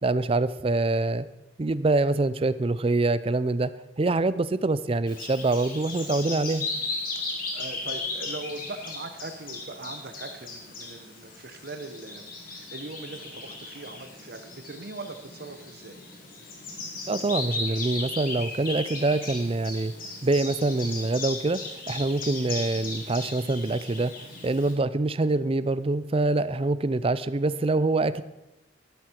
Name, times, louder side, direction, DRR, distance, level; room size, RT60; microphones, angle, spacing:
voice 1, 0.0-1.3 1.6-3.7 4.0-6.6 17.1-19.9 20.2-21.6 21.9-24.1 24.4-28.2, right 2 dB, 30° right, 15 dB, 0.5 m, -25 dB
Bird vocalization bird call bird song, 5.1-24.7, left 3 dB, 50° left, 2.7 m, -37 dB
voice 2, 7.5-16.0, right 2 dB, 55° right, 7 dB, 0.9 m, -40 dB
12.5 x 11.5 x 4.5 m, 0.98 s
head